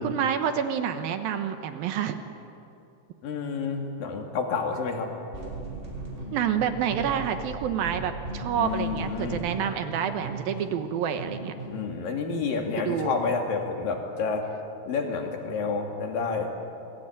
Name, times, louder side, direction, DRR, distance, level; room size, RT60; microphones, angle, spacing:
voice 1, 0.0-2.2 6.3-11.5 12.8-13.1, right 8 dB, 70° right, 8 dB, 2.4 m, -28 dB
voice 2, 3.2-5.1 8.5-9.4 11.7-14.5 14.9-16.5, left 5 dB, 55° left, 2 dB, 3.9 m, -29 dB
sound 1, 5.3-12.0, right 2 dB, 10° right, 3.9 m, -38 dB
27.0 x 21.0 x 9.0 m, 2.7 s
omnidirectional pair, 5.2 m